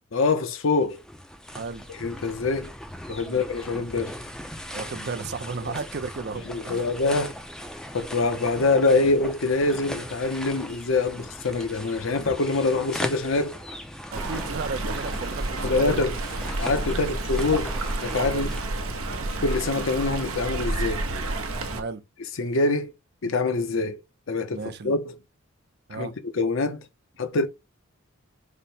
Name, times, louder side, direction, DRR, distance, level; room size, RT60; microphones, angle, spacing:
voice 1, 0.1-1.0 2.0-2.7 3.1-4.2 5.6-5.7 6.5-7.3 7.9-13.6 15.6-16.2 16.6-17.7 18.0-18.5 19.4-21.1 22.4-22.9 23.2-24.0 24.3-24.6 24.8-25.1 25.9-26.1 26.3-26.8 27.2-27.5, left 3 dB, 65° left, 0.6 m, -24 dB
sound 1, 0.6-18.6, equal, 5° left, 0.4 m, -39 dB
voice 2, 1.5-1.9 3.2-3.4 4.7-6.9 14.1-16.1 16.9-17.1 18.3-18.5 21.7-22.0 24.5-25.0 25.9-26.1, right 4 dB, 50° right, 0.5 m, -34 dB
Stream, 14.1-21.8, right 2 dB, 85° right, 0.8 m, -30 dB
5.0 x 2.1 x 4.2 m
head